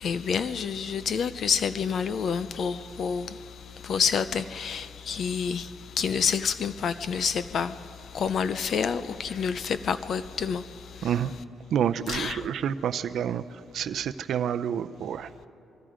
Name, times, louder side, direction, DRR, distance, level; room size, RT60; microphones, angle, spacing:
voice 1, 0.0-3.4 3.8-5.7 6.0-7.8 8.1-10.6 11.0-11.1 12.1-12.4, left 6 dB, 50° left, 0.5 m, -28 dB
voice 2, 11.0-11.3 11.7-15.3, right 9 dB, 60° right, 0.5 m, -29 dB
25.0 x 23.5 x 5.1 m
cardioid pair, 160°, 0 cm